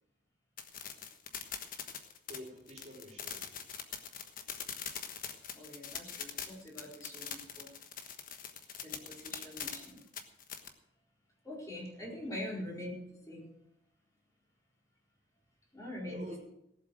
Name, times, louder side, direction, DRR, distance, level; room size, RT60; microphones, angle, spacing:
sound 1, 0.6-10.7, left 8 dB, 50° left, 1.3 m, -42 dB
voice 1, 2.3-3.4 12.0-12.2 16.1-16.4, equal, 40° right, -1 dB, 3.4 m, -48 dB
voice 2, 5.5-7.7 8.8-10.0 11.4-12.9 13.3-13.5 15.7-16.4, left 1 dB, 20° left, -4 dB, 4.6 m, -43 dB
18.0 x 7.8 x 6.3 m, 0.76 s
head